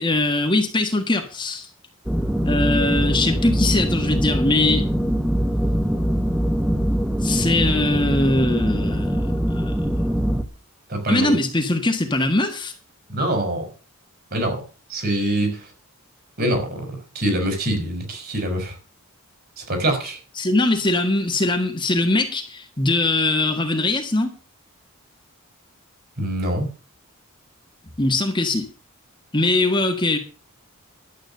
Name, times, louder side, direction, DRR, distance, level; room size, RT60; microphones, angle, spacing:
voice 1, 0.0-1.7 2.4-4.9 7.2-9.2 9.5-9.7 11.1-12.7 20.4-24.3 28.0-28.7 29.3-30.2, left 2 dB, 20° left, 1.6 m, -21 dB
sound 1, 2.1-10.4, equal, 5° right, 1.0 m, -22 dB
voice 2, 10.9-11.3 13.1-13.7 14.3-14.6 14.9-15.6 16.4-18.7 19.6-20.2 26.2-26.7, right 1 dB, 45° right, 4.6 m, -24 dB
12.0 x 8.7 x 6.5 m
head